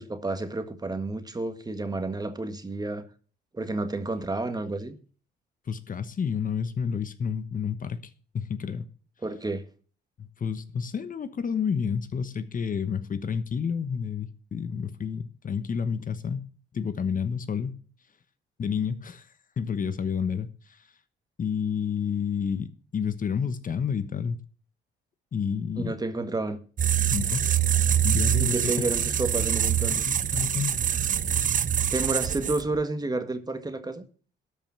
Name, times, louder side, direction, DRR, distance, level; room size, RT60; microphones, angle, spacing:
voice 1, 0.0-3.0 3.5-4.9 9.2-9.7 25.8-26.6 28.4-30.0 31.9-34.0, right 2 dB, 20° right, 1.6 m, -30 dB
voice 2, 5.7-8.9 10.2-16.5 16.7-17.8 18.6-19.3 19.6-20.9 21.4-24.4 25.3-26.0 27.1-27.5 28.0-28.7 29.9-30.8, left 6 dB, 45° left, 1.1 m, -30 dB
sound 1, 26.8-32.8, right 9 dB, 40° right, 0.6 m, -25 dB
13.0 x 5.5 x 7.3 m
cardioid pair, 90°, 20 cm